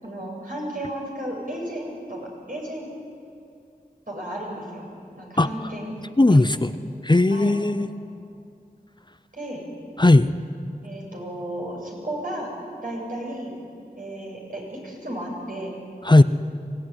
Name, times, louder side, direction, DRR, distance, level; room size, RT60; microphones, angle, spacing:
voice 1, 0.0-2.9 4.1-4.8 5.2-5.9 6.3-6.7 7.3-7.6 9.3-9.6 10.8-12.5 12.8-13.5 14.0-15.7, right 1 dB, 65° right, -2 dB, 7.6 m, -33 dB
voice 2, 6.2-6.7 7.0-7.9 10.0-10.4 16.1-16.2, left 2 dB, 30° left, 12 dB, 0.7 m, -16 dB
24.5 x 18.0 x 9.9 m, 2.4 s
wide cardioid pair, 45°, 15 cm